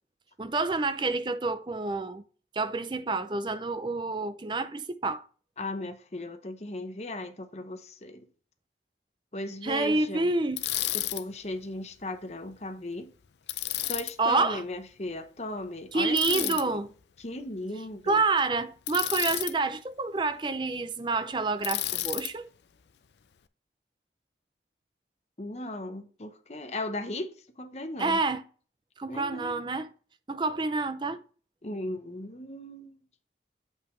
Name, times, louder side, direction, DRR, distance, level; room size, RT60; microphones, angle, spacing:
voice 1, 0.4-2.2 2.5-5.2 9.6-10.6 14.2-14.6 15.9-16.9 18.1-22.5 28.0-28.4 29.0-29.9 30.3-31.2, right 3 dB, 25° right, 0.4 m, -28 dB
voice 2, 5.6-8.3 9.3-10.3 10.9-13.1 13.9-16.8 17.2-18.2 25.4-28.2 29.1-29.6 31.6-33.0, left 1 dB, 35° left, 0.8 m, -37 dB
Bicycle, 10.6-11.2 13.5-14.1 16.2-16.6 18.9-19.5 21.6-22.3, left 15 dB, 75° left, 0.5 m, -31 dB
7.1 x 5.4 x 3.2 m
head